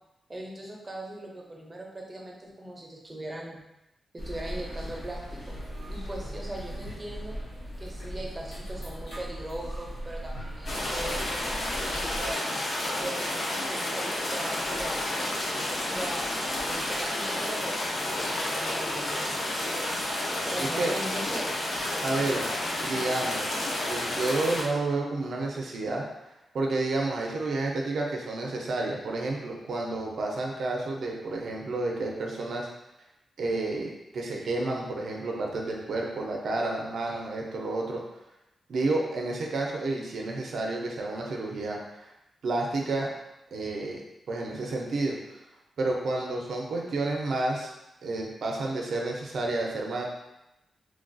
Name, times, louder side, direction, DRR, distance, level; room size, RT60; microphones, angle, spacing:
voice 1, 0.3-3.6 4.1-5.6 5.9-7.4 7.8-12.6 13.0-16.2 16.7-19.3 20.4-21.6 22.6-22.9, right 1 dB, 20° right, -2 dB, 0.5 m, -39 dB
sound 1, 4.2-12.3, equal, 85° left, 0.9 m, -38 dB
sound 2, 10.7-24.6, left 1 dB, 55° left, 0.6 m, -30 dB
voice 2, 20.6-20.9 22.0-22.5 22.8-26.0 26.5-32.7 33.4-38.0 38.7-42.1 42.4-43.1 43.5-44.0 44.3-45.2 45.8-47.7 48.0-50.0, right 2 dB, 70° right, -1 dB, 0.5 m, -30 dB
3.1 x 2.3 x 2.5 m, 0.91 s
wide cardioid pair, 150°, 0 cm